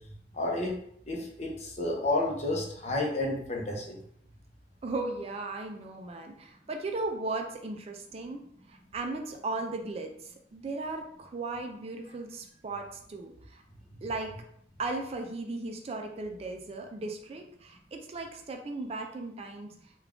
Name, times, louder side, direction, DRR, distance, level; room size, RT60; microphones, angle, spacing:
voice 1, 0.3-0.7 1.1-4.0 12.1-12.2 14.0-14.1, left 2 dB, 40° left, -1 dB, 0.7 m, -31 dB
voice 2, 4.8-8.4 8.7-13.6 14.0-14.3 14.8-19.7, right 3 dB, 35° right, 3 dB, 0.4 m, -36 dB
3.5 x 2.3 x 3.5 m, 0.69 s
head